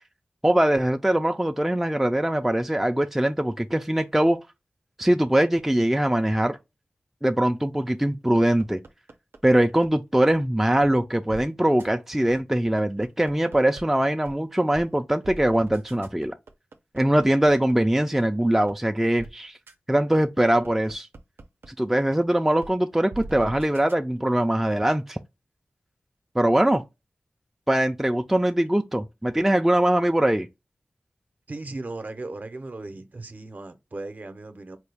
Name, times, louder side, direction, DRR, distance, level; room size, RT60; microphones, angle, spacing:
voice 1, 0.4-4.4 5.0-6.6 7.2-8.8 9.4-16.3 16.9-19.6 19.9-21.1 21.8-25.2 26.4-26.8 27.7-30.5, right 1 dB, 5° right, 0.3 m, -22 dB
sound 1, 8.4-9.9 10.3-10.4 10.8-10.9 11.3-11.4 11.8-11.9 12.3-13.8 14.3-14.4 14.7-14.9 15.2-17.7 18.2-18.3 18.7-18.8 19.2-19.3 19.7-19.8 20.2-21.7 22.1-22.2 22.6-22.7 23.1-23.9, right 3 dB, 90° right, 0.6 m, -42 dB
voice 2, 31.5-34.8, right 2 dB, 45° right, 0.6 m, -37 dB
4.5 x 2.2 x 3.3 m
wide cardioid pair, 80°, 4 cm